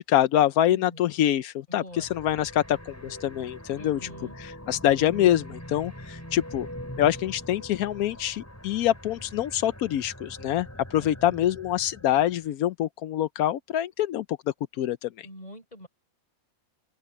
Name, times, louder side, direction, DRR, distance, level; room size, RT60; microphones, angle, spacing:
voice 1, 0.0-4.0 4.4-6.7 7.0-14.2 14.8-15.3, left 12 dB, 85° left, 1.1 m, -25 dB
voice 2, 0.7-1.0 1.7-2.1 3.8-4.4 11.0-11.5 15.2-15.9, equal, 30° left, 6.2 m, -44 dB
sound 1, 1.9-12.5, equal, 10° left, 7.4 m, -43 dB
open air
omnidirectional pair, 1.5 m